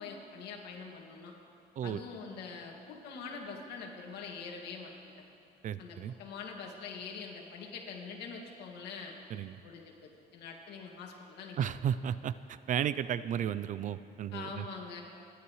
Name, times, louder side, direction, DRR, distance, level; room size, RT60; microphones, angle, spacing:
voice 1, 0.0-1.3 1.8-4.9 5.8-9.1 9.6-11.7 14.3-15.0, left 5 dB, 80° left, 1 dB, 2.2 m, -44 dB
voice 2, 5.6-6.1 9.3-9.6 11.6-14.6, right 9 dB, 50° right, 15 dB, 0.4 m, -34 dB
29.0 x 11.5 x 3.2 m, 2.8 s
cardioid pair, 110°, 17 cm